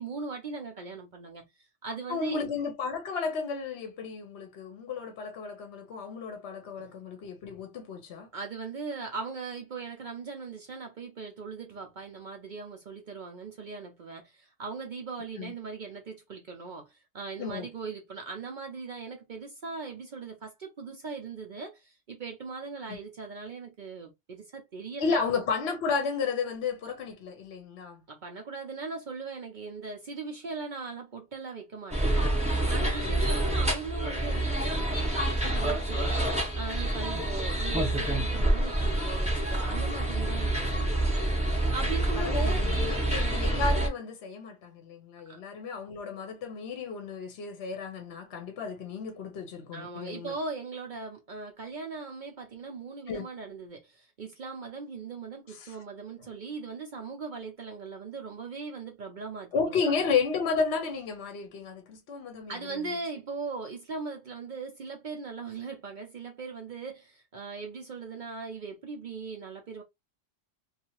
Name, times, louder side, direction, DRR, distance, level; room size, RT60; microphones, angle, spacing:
voice 1, 0.0-2.4 6.8-7.0 8.3-25.2 28.1-41.4 41.7-43.0 45.3-45.4 49.7-60.0 62.5-69.8, right 4 dB, 55° right, 0.6 m, -39 dB
voice 2, 2.1-8.3 15.4-15.5 17.4-17.7 22.9-23.0 25.0-28.0 33.0-33.2 42.2-50.4 53.1-53.3 55.5-55.7 59.5-62.9, left 5 dB, 65° left, 0.9 m, -33 dB
sound 1, 31.9-43.9, right 1 dB, 5° right, 0.6 m, -27 dB
2.7 x 2.4 x 2.8 m
omnidirectional pair, 1.2 m